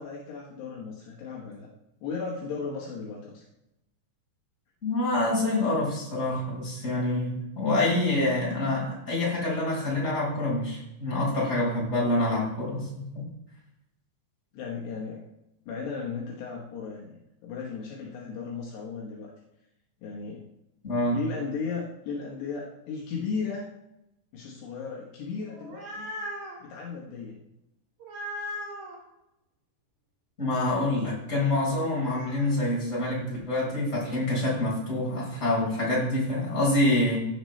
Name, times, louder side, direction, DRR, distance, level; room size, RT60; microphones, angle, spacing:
voice 1, 0.0-1.7 2.0-3.4 14.5-15.2 15.7-17.2 17.4-19.3 20.0-20.5 21.1-23.7 24.3-26.1 26.6-27.4, left 5 dB, 70° left, -3 dB, 3.3 m, -35 dB
voice 2, 4.8-12.8 13.1-13.2 20.8-21.2 30.4-37.2, left 1 dB, 15° left, -5 dB, 4.5 m, -26 dB
sound 1, 25.4-26.6 28.0-29.0 31.8-32.5, left 1 dB, 45° right, 3.4 m, -38 dB
15.5 x 7.6 x 3.3 m, 0.89 s
omnidirectional pair, 5.3 m